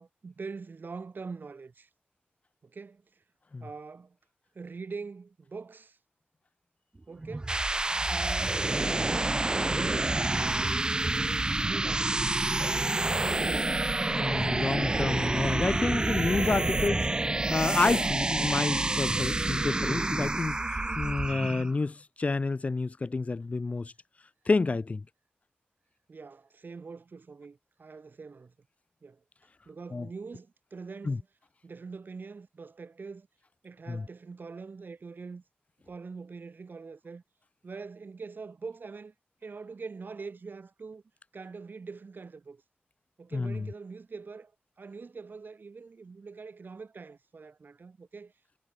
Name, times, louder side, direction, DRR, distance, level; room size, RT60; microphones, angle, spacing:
voice 1, 0.0-1.9 2.6-3.2 3.6-4.2 4.5-6.0 7.1-7.6 8.1-10.8 11.5-12.4 20.1-21.2 26.1-28.5 29.0-29.2 29.7-31.3 31.6-33.3 33.6-35.4 35.9-37.2 37.6-39.1 39.4-41.0 41.3-42.6 43.2-44.5 44.8-48.3, right 4 dB, 55° right, 5.6 m, -44 dB
sound 1, 7.2-21.7, right 2 dB, 20° right, 0.5 m, -28 dB
voice 2, 14.1-17.1 17.5-20.6 21.0-23.9 24.5-25.0 29.9-30.1 31.1-31.2 33.9-34.0 43.3-43.6, left 3 dB, 35° left, 0.6 m, -29 dB
wide cardioid pair, 120°, 4 cm